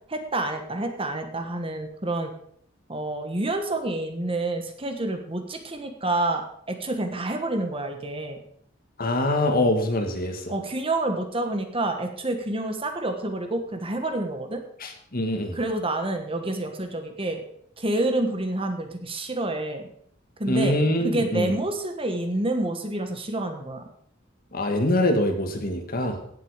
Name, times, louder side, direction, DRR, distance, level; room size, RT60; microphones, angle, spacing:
voice 1, 0.1-2.3 2.9-8.4 10.5-14.6 15.5-17.4 17.8-19.9 20.4-20.7 21.0-23.8, right 2 dB, 30° right, 5 dB, 1.5 m, -28 dB
voice 2, 9.0-10.5 14.8-15.6 20.5-21.5 24.5-26.2, left 1 dB, 50° left, 5 dB, 2.0 m, -24 dB
16.5 x 7.7 x 5.1 m, 0.66 s
head